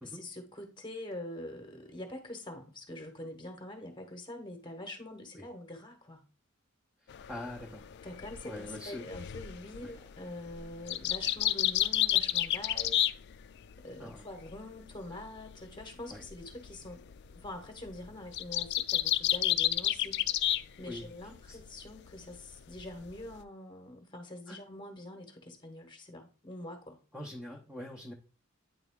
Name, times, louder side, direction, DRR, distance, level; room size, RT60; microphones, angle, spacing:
voice 1, 0.0-6.2 7.3-7.4 8.0-13.1 13.8-17.0 17.3-20.2 20.8-27.0, left 1 dB, 25° left, 1.0 m, -45 dB
sound 1, 7.1-13.8 14.1-20.6 20.9-21.6 22.0-23.4, left 13 dB, 55° left, 0.3 m, -31 dB
voice 2, 7.3-7.9 8.4-9.0 9.8-9.9 14.0-14.3 16.1-16.2 20.9-21.1 21.5-21.6 24.5-24.6 27.1-28.1, left 1 dB, 5° right, 0.7 m, -43 dB
9.1 x 3.5 x 3.6 m
head